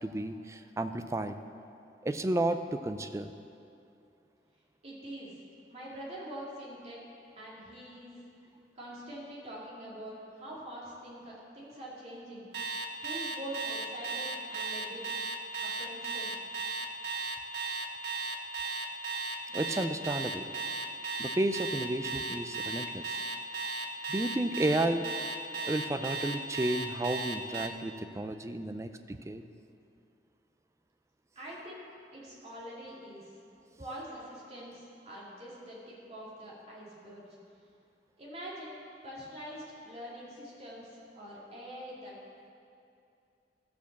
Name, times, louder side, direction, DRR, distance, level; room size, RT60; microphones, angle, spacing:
voice 1, 0.0-1.4 2.0-3.3 19.5-20.5 21.2-23.2 24.1-25.0 25.7-29.4, right 1 dB, 15° right, 9 dB, 0.4 m, -32 dB
voice 2, 4.8-5.4 5.7-7.0 7.4-8.2 8.8-12.5 13.0-15.0 15.6-16.5 31.3-33.3 33.8-37.3 38.2-42.2, equal, 40° right, -6 dB, 2.6 m, -44 dB
Alarm, 12.5-27.7, right 3 dB, 65° right, 0.7 m, -35 dB
14.0 x 5.2 x 6.8 m, 2.6 s
head